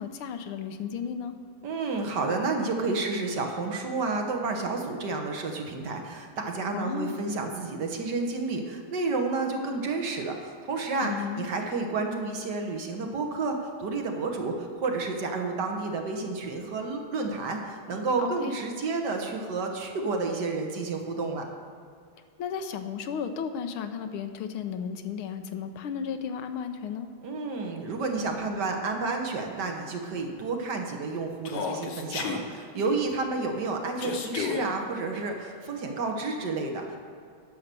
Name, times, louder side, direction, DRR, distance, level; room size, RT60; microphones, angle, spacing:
voice 1, 0.0-1.4 6.7-7.1 11.0-11.5 18.2-18.6 22.4-27.1, left 7 dB, 85° left, 8 dB, 1.6 m, -34 dB
voice 2, 1.6-21.5 27.2-37.0, right 3 dB, 60° right, 3 dB, 1.6 m, -30 dB
Human voice, 31.4-32.4 34.0-34.6, left 6 dB, 60° left, 1.5 m, -31 dB
10.5 x 6.5 x 6.7 m, 2.3 s
omnidirectional pair, 2.3 m